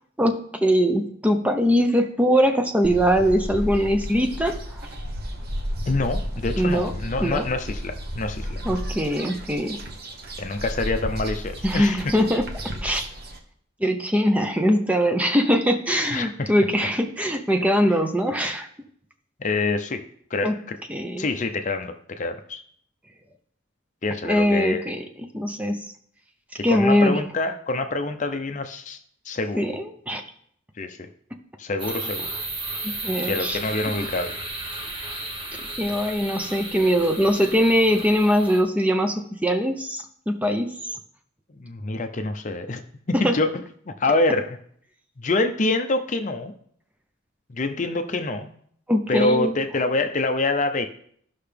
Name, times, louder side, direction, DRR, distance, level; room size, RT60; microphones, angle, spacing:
voice 1, 0.2-4.9 6.6-6.9 7.2-7.5 8.6-9.8 11.6-13.0 13.8-18.7 20.4-20.6 20.9-21.3 24.2-25.0 25.3-25.8 26.6-27.2 29.6-30.2 32.8-33.6 35.8-40.8 43.2-43.4 48.9-49.5, equal, 5° right, 5 dB, 0.6 m, -22 dB
sound 1, 2.8-13.4, equal, 50° right, 0.9 m, -33 dB
voice 2, 5.9-8.6 10.4-12.1 16.1-16.5 19.4-20.1 20.3-20.8 21.2-22.6 24.0-24.9 26.7-29.0 29.3-29.6 30.8-31.1 31.6-32.3 33.2-34.3 41.5-42.8 43.1-44.6 45.2-46.5 47.5-48.5 49.1-50.9, left 2 dB, 35° left, 7 dB, 0.6 m, -26 dB
sound 2, 31.8-38.6, right 2 dB, 25° right, 1.3 m, -34 dB
14.0 x 5.7 x 3.4 m, 0.64 s
head